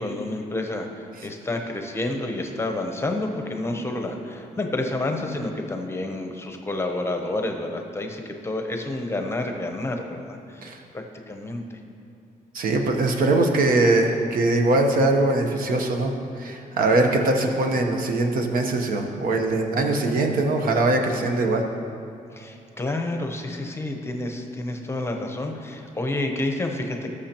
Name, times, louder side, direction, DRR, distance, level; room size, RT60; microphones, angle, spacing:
voice 1, 0.0-11.8 22.3-27.1, left 2 dB, 15° left, 4 dB, 0.8 m, -29 dB
voice 2, 12.5-16.1 16.4-21.6, right 2 dB, 75° right, 3 dB, 1.0 m, -21 dB
18.5 x 6.6 x 2.9 m, 2.5 s
wide cardioid pair, 150°, 15 cm